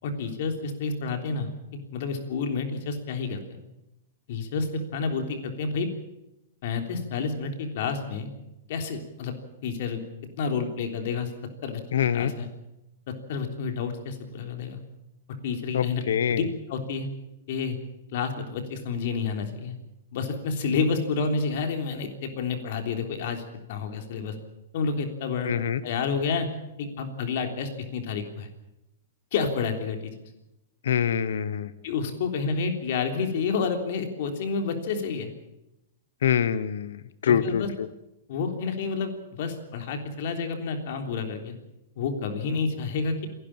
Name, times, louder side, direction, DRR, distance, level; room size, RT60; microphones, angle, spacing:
voice 1, 0.0-3.6 4.3-5.9 6.6-8.3 8.7-9.3 9.6-10.0 10.4-11.3 11.6-12.5 13.3-14.8 15.4-16.0 16.3-16.4 16.7-17.1 17.5-17.8 18.1-19.8 20.1-23.4 23.7-24.4 24.7-25.5 25.8-26.5 26.8-28.5 29.3-30.1 31.8-35.3 37.3-37.7 38.3-39.1 39.4-41.6 42.0-43.3, left 5 dB, 60° left, 5 dB, 3.5 m, -29 dB
voice 2, 11.9-12.3 15.7-16.5 25.4-25.8 30.8-31.7 36.2-37.9, left 8 dB, 80° left, 15 dB, 1.1 m, -25 dB
28.0 x 11.5 x 8.9 m, 0.91 s
hypercardioid pair, 150°, 0 cm